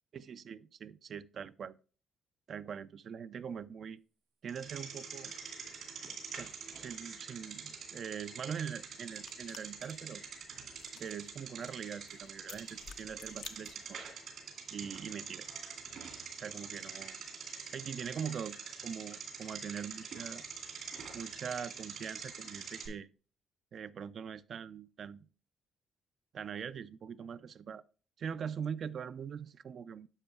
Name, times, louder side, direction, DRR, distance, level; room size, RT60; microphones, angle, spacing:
voice 1, 0.1-1.7 2.5-4.0 4.4-5.3 6.4-10.2 11.0-14.1 14.7-15.5 16.4-17.2 17.7-18.6 18.8-20.4 21.1-23.1 23.7-25.3 26.3-27.8 28.2-30.1, right 7 dB, 55° right, 0.3 m, -42 dB
Bicycle, 4.5-22.9, right 6 dB, 70° right, 2.3 m, -45 dB
sound 1, 9.1-14.1, left 8 dB, 75° left, 0.5 m, -54 dB
9.8 x 6.8 x 2.3 m
cardioid pair, 90°, 0 cm